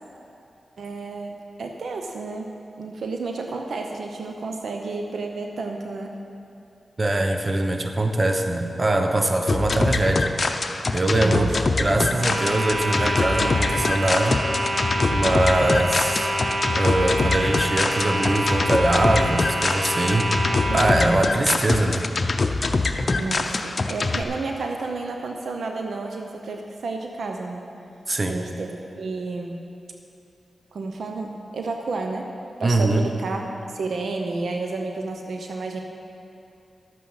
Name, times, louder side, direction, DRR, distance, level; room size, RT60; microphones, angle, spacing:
voice 1, 0.8-2.5 2.8-6.2 11.2-11.6 20.7-21.2 23.2-27.7 28.3-29.6 30.7-32.3 32.6-35.8, right 3 dB, 80° right, 3 dB, 0.8 m, -31 dB
voice 2, 7.0-10.3 10.9-11.5 11.8-14.4 15.1-16.3 16.8-20.3 20.7-22.0 28.1-28.4 32.6-33.0, right 2 dB, 35° right, 5 dB, 1.1 m, -22 dB
sound 1, 9.5-24.2, left 3 dB, 55° left, 0.7 m, -24 dB
sound 2, 12.1-21.0, equal, 55° right, 2.1 m, -27 dB
11.5 x 8.7 x 5.8 m, 2.7 s
cardioid pair, 45°, 0 cm